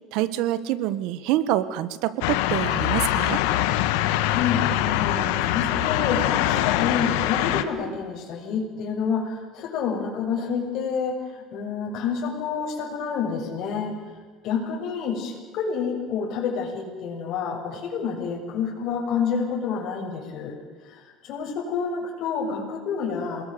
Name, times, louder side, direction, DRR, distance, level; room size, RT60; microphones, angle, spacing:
voice 1, 0.1-3.4, right 13 dB, 70° right, 14 dB, 1.4 m, -26 dB
sound 1, 2.2-7.6, left 14 dB, 90° left, 1.4 m, -23 dB
voice 2, 4.3-13.9 14.4-20.6 20.9-23.5, left 6 dB, 55° left, 1 dB, 6.9 m, -28 dB
28.0 x 20.5 x 6.8 m, 1.4 s
cardioid pair, 135°, 0 cm